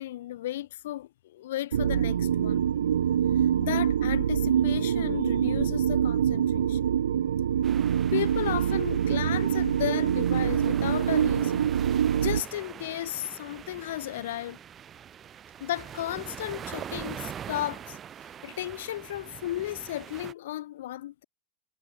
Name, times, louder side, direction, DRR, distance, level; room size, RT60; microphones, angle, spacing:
voice 1, 0.0-2.6 3.6-6.8 8.1-11.7 12.1-14.6 15.6-18.0 18.4-21.2, left 14 dB, 60° left, 2.9 m, -34 dB
sound 1, 1.7-12.4, right 9 dB, 70° right, 0.3 m, -25 dB
sound 2, 7.6-20.3, right 9 dB, 30° right, 5.1 m, -43 dB
figure-of-eight pair, 90°, 0 cm